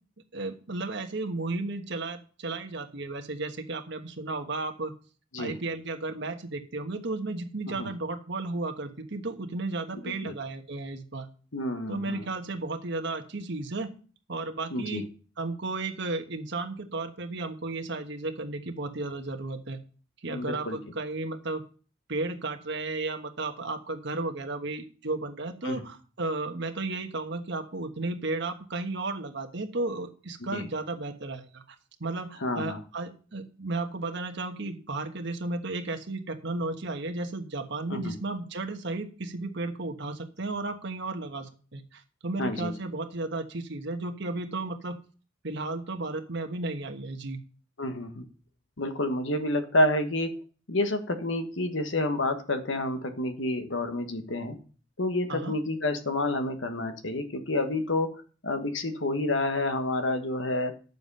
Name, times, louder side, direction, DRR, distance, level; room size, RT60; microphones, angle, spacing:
voice 1, 0.3-4.9 5.4-11.3 11.9-13.9 14.3-15.0 15.4-19.8 20.2-21.6 22.1-45.0 45.4-47.4 55.3-55.5, right 2 dB, 60° right, 5 dB, 1.3 m, -34 dB
voice 2, 11.5-12.2 14.7-15.0 20.3-20.8 25.6-25.8 30.5-30.6 32.4-32.8 37.9-38.1 42.4-42.7 47.8-48.2 48.8-50.3 50.7-54.6 55.0-58.2 58.4-60.7, left 1 dB, 65° left, 7 dB, 1.4 m, -29 dB
9.7 x 7.1 x 5.5 m, 0.39 s
head